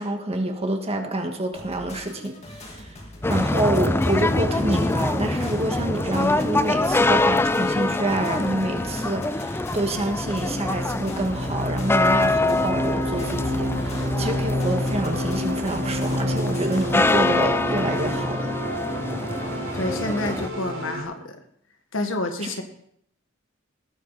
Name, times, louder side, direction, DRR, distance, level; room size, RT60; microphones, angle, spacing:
voice 1, 0.0-3.0 3.3-18.5 22.4-22.5, right 1 dB, 30° right, 4 dB, 1.7 m, -27 dB
sound 1, 1.5-18.2, left 1 dB, 35° left, 2.2 m, -42 dB
sound 2, 3.2-20.5, left 2 dB, 10° left, 0.4 m, -25 dB
sound 3, 4.3-21.0, equal, 75° right, 3.4 m, -31 dB
voice 2, 19.7-21.4 21.9-22.6, left 2 dB, 70° left, 6 dB, 1.7 m, -28 dB
19.0 x 8.7 x 4.1 m, 0.68 s
head